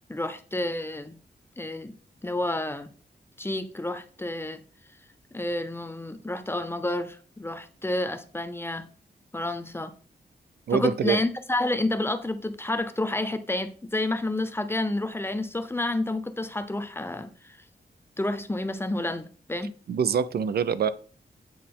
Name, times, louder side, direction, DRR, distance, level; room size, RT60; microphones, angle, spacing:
voice 1, 0.1-1.2 1.6-1.9 2.2-2.9 3.4-4.6 5.3-8.9 9.3-9.9 10.7-17.6 18.2-19.7, left 2 dB, 15° left, 0.6 m, -30 dB
voice 2, 10.7-11.2 19.9-20.9, right 7 dB, 70° right, 0.5 m, -24 dB
8.5 x 4.1 x 3.7 m
wide cardioid pair, 120°, 17 cm